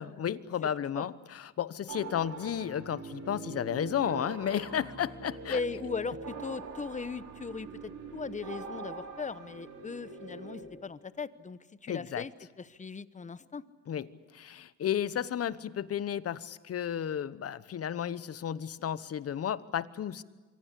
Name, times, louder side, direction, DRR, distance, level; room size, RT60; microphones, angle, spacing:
voice 1, 0.0-5.6 11.9-12.2 13.9-20.2, left 9 dB, 50° left, 16 dB, 1.0 m, -33 dB
sound 1, 1.9-10.6, right 3 dB, 85° right, 5.7 m, -43 dB
voice 2, 5.5-12.3 12.6-13.6, left 5 dB, 25° left, 15 dB, 1.0 m, -38 dB
26.0 x 23.5 x 8.3 m, 1.3 s
cardioid pair, 90°, 30 cm